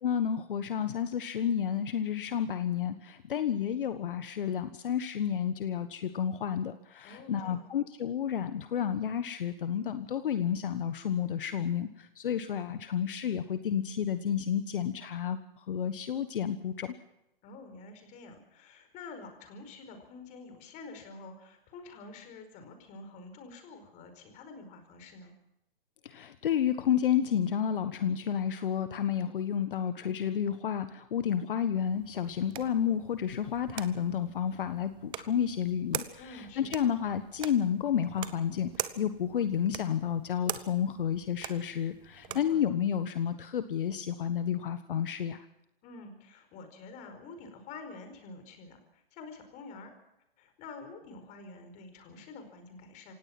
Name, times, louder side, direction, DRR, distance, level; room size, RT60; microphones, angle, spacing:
voice 1, 0.0-16.9 26.0-45.4, left 9 dB, 60° left, 11 dB, 1.4 m, -31 dB
voice 2, 7.0-7.7 17.4-25.3 36.2-37.0 42.3-42.6 45.8-49.9 50.4-53.1, left 3 dB, 25° left, 7 dB, 4.8 m, -48 dB
sound 1, 31.9-42.6, right 13 dB, 15° right, 0.9 m, -43 dB
27.5 x 17.0 x 6.1 m, 0.88 s
hypercardioid pair, 145°, 30 cm